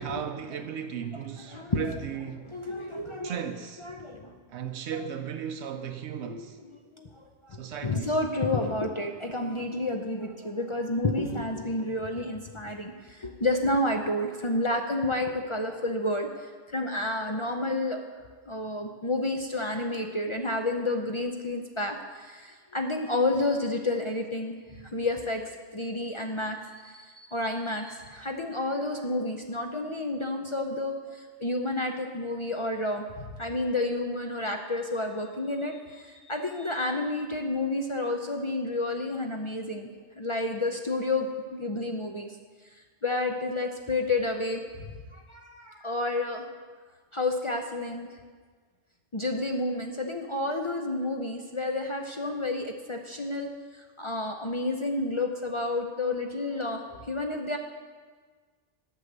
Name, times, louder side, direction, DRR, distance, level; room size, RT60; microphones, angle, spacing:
voice 1, 0.0-2.5 3.2-3.9 4.5-6.6 7.5-8.2, right 8 dB, 80° right, 0.9 m, -36 dB
voice 2, 1.5-1.9 2.4-3.4 3.8-4.3 6.2-7.6 7.8-16.3 16.7-18.0 18.5-24.6 24.9-25.4 25.7-26.6 26.8-39.9 40.2-42.3 43.0-44.6 45.1-46.5 47.1-48.1 49.1-57.6, left 2 dB, 35° left, 0.5 m, -30 dB
8.3 x 6.5 x 7.9 m
omnidirectional pair, 1.1 m